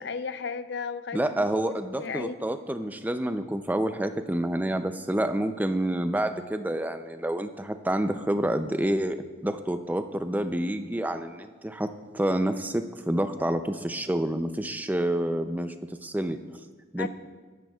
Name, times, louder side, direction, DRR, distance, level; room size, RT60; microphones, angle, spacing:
voice 1, 0.0-2.4 17.0-17.1, left 5 dB, 60° left, 11 dB, 0.5 m, -35 dB
voice 2, 1.1-9.2 9.4-15.7 16.0-16.4 16.9-17.1, right 1 dB, 10° right, 8 dB, 0.4 m, -28 dB
22.0 x 10.5 x 2.4 m, 1.5 s
head